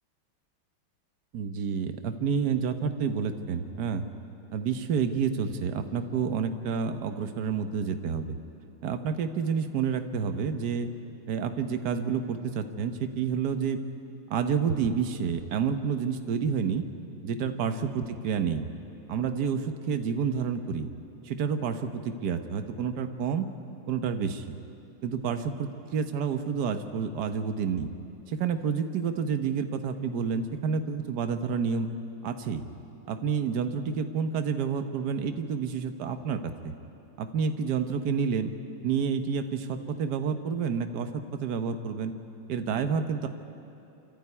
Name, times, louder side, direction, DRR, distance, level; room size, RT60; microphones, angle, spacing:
voice 1, 1.3-4.0 4.5-8.4 8.8-10.9 11.3-13.8 14.3-16.8 17.2-18.7 19.1-20.9 21.2-23.5 23.9-24.5 25.0-27.9 28.3-31.9 32.2-32.7 33.1-36.7 37.2-38.5 38.8-42.1 42.5-43.3, right 6 dB, 60° right, 8 dB, 1.5 m, -29 dB
25.5 x 13.5 x 9.6 m, 3.0 s
omnidirectional pair, 2.2 m